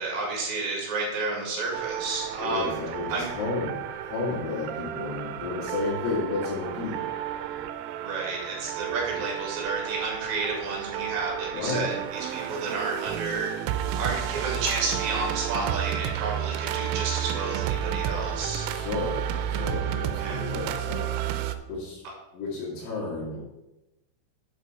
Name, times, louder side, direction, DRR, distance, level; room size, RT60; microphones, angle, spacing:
voice 1, 0.0-2.8 3.1-3.3 8.0-13.5 13.9-18.7 20.2-20.4, right 3 dB, 45° right, -1 dB, 2.8 m, -31 dB
sound 1, 1.7-21.6, right 10 dB, 85° right, 3.3 m, -32 dB
voice 2, 2.4-7.0 11.5-11.9 18.7-19.2 19.5-22.0 22.3-23.4, left 3 dB, 85° left, -8 dB, 4.9 m, -32 dB
8.8 x 6.9 x 4.8 m, 0.95 s
omnidirectional pair, 5.9 m